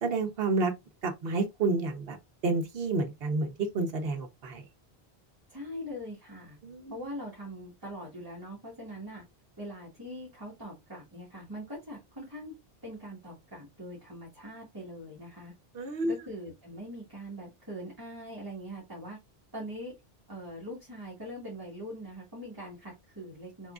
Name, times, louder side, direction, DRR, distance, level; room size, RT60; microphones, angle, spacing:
voice 1, 0.0-0.7 1.0-2.2 2.4-4.6 6.6-6.9 15.7-16.1, right 3 dB, 70° right, 1.1 m, -29 dB
voice 2, 5.5-6.6 6.9-9.2 9.6-12.5 12.8-15.5 16.1-19.2 19.5-19.9 20.3-23.7, equal, 20° right, 1.4 m, -42 dB
4.6 x 3.6 x 2.4 m
omnidirectional pair, 1.1 m